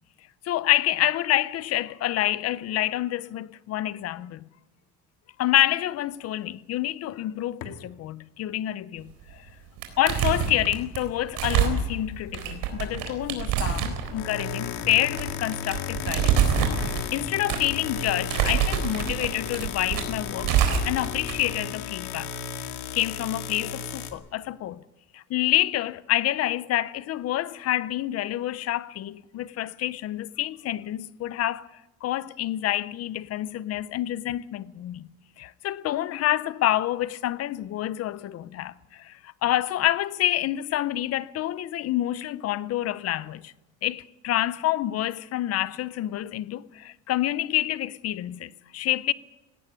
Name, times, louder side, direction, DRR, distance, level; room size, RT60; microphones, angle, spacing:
voice 1, 0.4-4.5 5.4-9.5 10.0-16.4 17.1-20.6 20.8-22.3 22.9-24.8 25.1-31.7 32.0-35.1 35.4-43.5 43.8-49.1, left 14 dB, 45° left, 0.6 m, -27 dB
sound 1, 7.6-7.8 13.9-24.1, left 7 dB, 75° left, 2.2 m, -34 dB
sound 2, 9.2-9.5 9.8-21.5, right 8 dB, 80° right, 4.1 m, -26 dB
18.0 x 17.5 x 8.8 m
cardioid pair, 160°, 33 cm